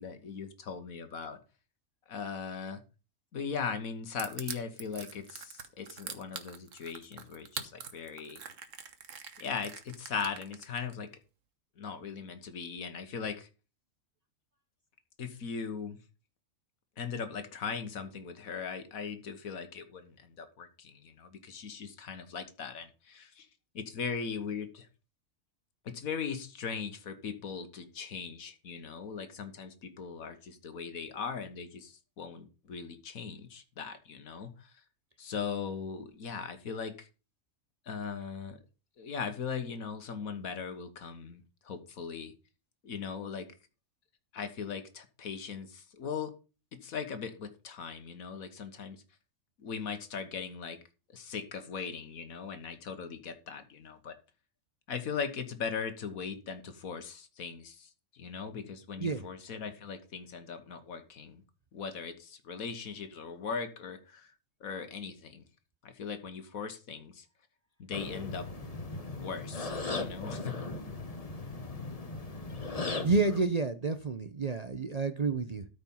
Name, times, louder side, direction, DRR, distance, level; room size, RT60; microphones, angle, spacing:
voice 1, 0.0-1.4 2.1-2.8 3.3-8.4 9.4-11.1 11.8-13.5 15.2-16.0 17.0-23.5 23.8-24.9 25.9-34.7 35.2-37.1 37.9-38.6 39.0-42.3 42.8-43.5 44.3-46.3 46.7-49.0 49.6-50.8 51.1-54.1 54.9-61.4 61.7-64.3 64.6-65.4 65.8-67.3 67.8-68.5 69.2-70.6, left 6 dB, 80° left, 1.7 m, -39 dB
Crushing, 4.2-10.9, right 6 dB, 65° right, 1.5 m, -43 dB
sound 1, 67.9-73.5, left 3 dB, 30° left, 1.1 m, -38 dB
voice 2, 73.0-75.7, right 3 dB, 35° right, 0.7 m, -29 dB
13.0 x 5.3 x 5.5 m
omnidirectional pair, 1.5 m